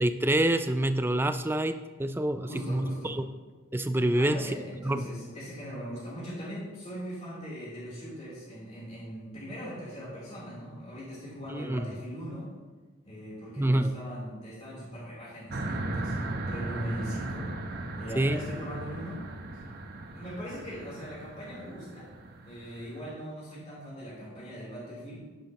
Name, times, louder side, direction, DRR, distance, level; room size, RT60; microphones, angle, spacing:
voice 1, 0.0-3.2 3.7-4.5 4.8-5.0 11.5-11.9 13.6-13.9 18.2-18.4, right 1 dB, 10° right, 10 dB, 0.3 m, -27 dB
voice 2, 2.5-3.2 4.1-12.5 13.0-17.5 18.0-19.2 20.1-22.1 22.4-25.2, equal, 30° left, -8 dB, 3.4 m, -40 dB
sound 1, 15.5-23.0, right 2 dB, 45° right, 0.9 m, -37 dB
11.0 x 10.0 x 3.0 m, 1.3 s
head